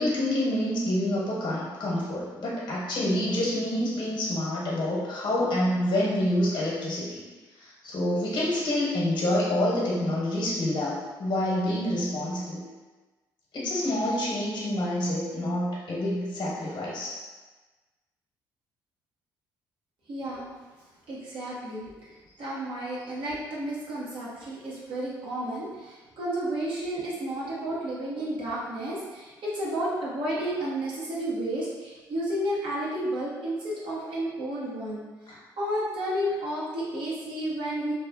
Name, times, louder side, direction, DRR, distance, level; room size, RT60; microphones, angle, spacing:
voice 1, 0.0-7.2 7.6-12.6 13.5-17.2 35.3-35.4, left 1 dB, 50° left, -6 dB, 0.9 m, -27 dB
voice 2, 20.1-20.5 21.1-35.0 35.6-37.9, right 1 dB, 60° right, -7 dB, 0.8 m, -32 dB
2.6 x 2.3 x 2.4 m, 1.3 s
hypercardioid pair, 50°, 10 cm